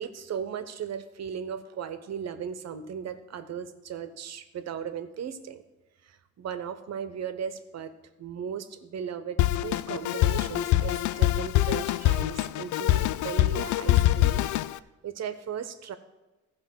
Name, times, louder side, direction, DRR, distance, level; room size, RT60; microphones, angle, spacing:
voice 1, 0.0-5.6 6.0-7.9 8.2-14.5 15.0-16.0, right 8 dB, 60° right, 11 dB, 1.0 m, -37 dB
Drum kit, 9.4-14.8, left 15 dB, 75° left, 0.5 m, -24 dB
14.5 x 5.1 x 6.3 m, 1.1 s
cardioid pair, 90°, 30 cm